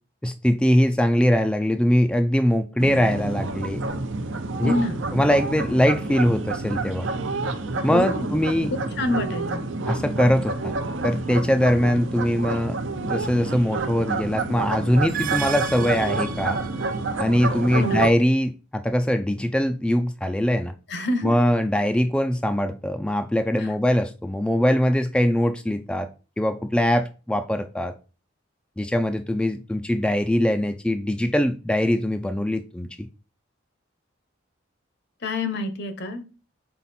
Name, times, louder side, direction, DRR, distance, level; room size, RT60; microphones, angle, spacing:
voice 1, 0.2-3.8 4.6-4.7 5.1-7.1 7.8-8.7 9.9-10.7 11.0-16.6 17.2-20.7 21.2-26.1 26.4-27.9 28.8-32.9, equal, 5° left, 0.3 m, -22 dB
sound 1, 2.8-18.1, right 3 dB, 75° right, 0.7 m, -29 dB
voice 2, 4.6-5.0 7.9-8.3 8.7-9.6 17.7-18.1 20.9-21.3 35.2-36.2, left 2 dB, 60° left, 0.9 m, -27 dB
sound 2, 14.9-17.2, right 8 dB, 45° right, 0.9 m, -32 dB
5.6 x 4.1 x 4.2 m
head